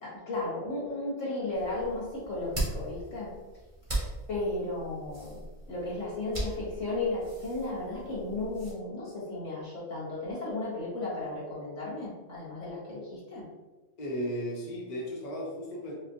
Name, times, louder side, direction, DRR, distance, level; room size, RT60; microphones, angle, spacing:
voice 1, 0.0-3.3 4.3-5.4 5.7-13.5, left 2 dB, 80° left, -7 dB, 1.9 m, -34 dB
sound 1, 1.5-8.7, right 1 dB, 30° right, 1.1 m, -39 dB
voice 2, 14.0-15.9, equal, 40° left, -4 dB, 0.8 m, -35 dB
5.0 x 2.1 x 2.9 m, 1.2 s
omnidirectional pair, 1.3 m